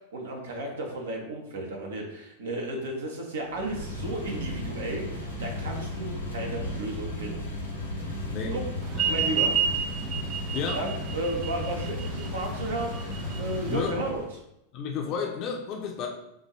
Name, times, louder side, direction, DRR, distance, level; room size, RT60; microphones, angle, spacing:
voice 1, 0.0-7.4 7.8-8.1 8.5-8.6 9.1-9.6 10.7-14.2, right 1 dB, 65° right, 1 dB, 1.1 m, -34 dB
sound 1, 3.4-14.3, left 1 dB, 90° left, 1.1 m, -35 dB
voice 2, 8.9-9.3 10.5-10.8 13.6-14.1 14.7-16.1, left 6 dB, 40° left, 1 dB, 0.7 m, -32 dB
sound 2, 8.9-13.9, right 8 dB, 30° right, 0.3 m, -30 dB
6.0 x 2.6 x 3.1 m, 0.82 s
figure-of-eight pair, 90°, 0 cm